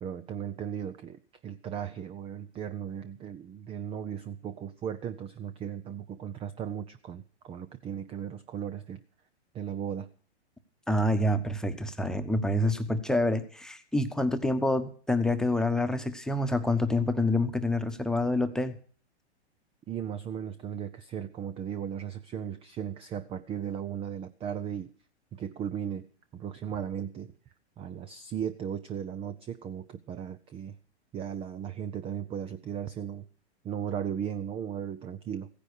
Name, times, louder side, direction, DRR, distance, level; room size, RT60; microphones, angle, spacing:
voice 1, 0.0-9.0 9.5-10.1 19.9-24.9 25.3-27.3 27.8-30.8 31.1-33.3 33.6-35.5, right 9 dB, 15° right, 14 dB, 0.6 m, -36 dB
voice 2, 10.9-18.7, left 1 dB, ahead, 8 dB, 1.2 m, -27 dB
15.5 x 10.0 x 6.6 m, 0.43 s
hypercardioid pair, 125°, 34 cm